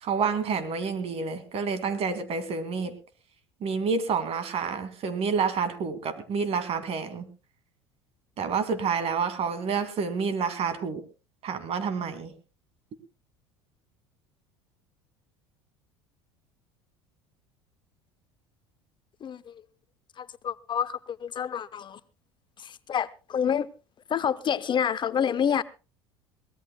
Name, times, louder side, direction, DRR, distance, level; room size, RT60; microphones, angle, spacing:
voice 1, 0.0-2.9 3.6-7.3 8.4-11.0 11.4-12.3, right 5 dB, 45° right, 2.4 m, -29 dB
voice 2, 19.2-19.5 20.2-22.0 22.6-23.7 24.1-25.6, left 8 dB, 35° left, 0.7 m, -28 dB
23.0 x 18.0 x 2.2 m
hypercardioid pair, 75°, 14 cm